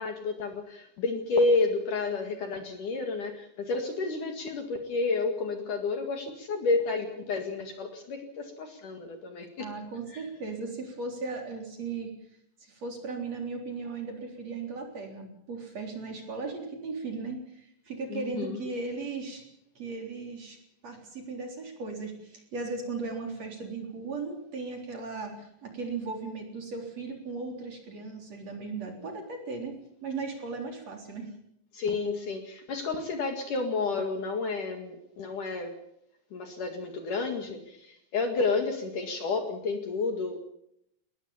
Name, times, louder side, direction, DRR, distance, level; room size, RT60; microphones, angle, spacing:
voice 1, 0.0-9.7 10.1-10.3 18.1-18.6 31.7-35.7 36.3-40.4, left 3 dB, 55° left, 5 dB, 3.1 m, -30 dB
voice 2, 9.6-12.1 12.6-19.4 19.7-20.6 20.8-31.3, right 4 dB, 40° right, 2 dB, 4.6 m, -37 dB
21.0 x 20.0 x 7.2 m, 0.75 s
omnidirectional pair, 5.0 m